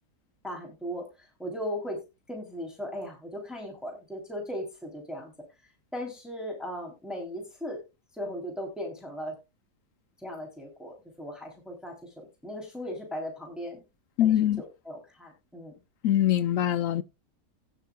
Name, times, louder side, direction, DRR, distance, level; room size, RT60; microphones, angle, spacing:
voice 1, 0.4-2.0 2.3-5.3 5.9-7.8 8.1-9.3 10.2-13.8 14.2-15.8, equal, ahead, 3.2 m, -37 dB
voice 2, 14.2-14.6 16.0-17.0, left 11 dB, 70° left, 1.0 m, -23 dB
18.0 x 6.5 x 2.3 m
omnidirectional pair, 1.6 m